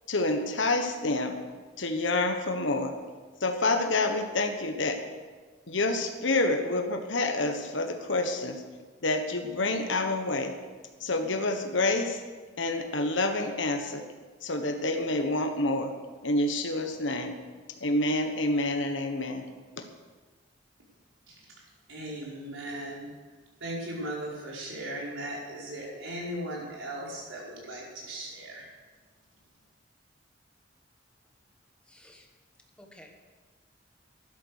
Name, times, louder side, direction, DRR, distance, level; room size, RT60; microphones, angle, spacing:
voice 1, 0.1-1.4 1.8-2.9 3.4-5.0 5.7-8.6 9.0-10.5 11.0-12.2 12.6-14.0 14.4-15.9 16.2-17.3 17.8-19.4 19.8-19.9, left 2 dB, 75° left, 5 dB, 1.3 m, -28 dB
voice 2, 21.9-23.1 23.6-28.7, right 1 dB, 90° right, -4 dB, 4.8 m, -37 dB
voice 3, 31.9-32.3 32.8-33.1, left 1 dB, 5° left, 2 dB, 1.5 m, -53 dB
13.0 x 11.5 x 6.5 m, 1.4 s
head